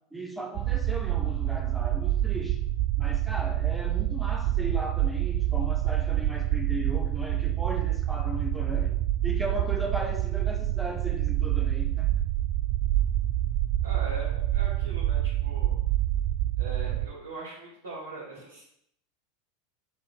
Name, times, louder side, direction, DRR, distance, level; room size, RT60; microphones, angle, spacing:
voice 1, 0.1-2.6 3.0-9.0 9.2-12.2, right 1 dB, 5° right, 3 dB, 1.2 m, -37 dB
sound 1, 0.5-17.1, right 13 dB, 50° right, 0.4 m, -27 dB
voice 2, 13.8-15.8 16.6-18.6, right 2 dB, 70° right, -9 dB, 2.4 m, -41 dB
8.4 x 4.0 x 3.5 m, 0.72 s
figure-of-eight pair, 85°, 0 cm